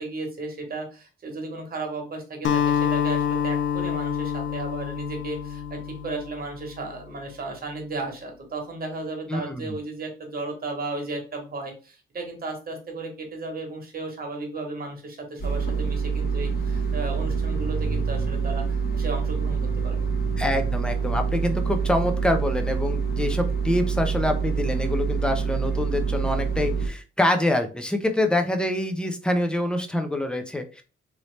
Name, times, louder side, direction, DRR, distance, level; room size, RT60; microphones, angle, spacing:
voice 1, 0.0-20.0, right 2 dB, 45° right, 2 dB, 1.1 m, -34 dB
Acoustic guitar, 2.4-6.9, left 8 dB, 60° left, 0.4 m, -27 dB
voice 2, 9.3-9.8 20.4-30.8, left 1 dB, 5° left, 5 dB, 0.4 m, -25 dB
sound 1, 15.4-26.9, right 5 dB, 45° left, 1.4 m, -26 dB
3.0 x 2.7 x 3.1 m, 0.34 s
wide cardioid pair, 145°, 21 cm